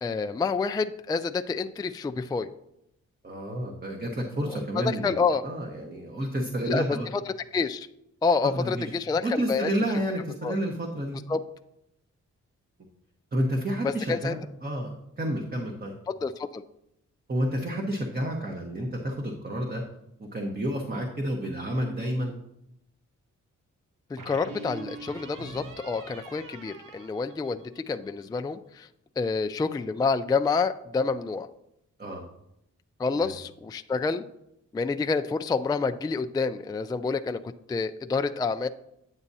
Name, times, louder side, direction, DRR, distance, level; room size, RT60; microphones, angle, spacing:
voice 1, 0.0-2.5 4.8-5.4 6.7-7.9 8.2-9.7 10.4-10.6 11.3-11.4 13.8-14.3 16.1-16.6 24.1-28.9 29.2-31.5 33.0-34.2 34.7-38.7, left 4 dB, 15° left, 9 dB, 0.3 m, -28 dB
voice 2, 3.2-7.1 8.5-8.9 9.2-11.2 13.3-14.9 15.2-15.9 17.3-19.8 20.2-22.3 32.0-32.2 33.1-33.3, equal, 30° right, 1 dB, 1.1 m, -30 dB
sound 1, 21.4-22.3 24.2-27.9, right 2 dB, 80° right, 0.9 m, -42 dB
9.6 x 7.1 x 2.7 m, 0.81 s
cardioid pair, 60°, 32 cm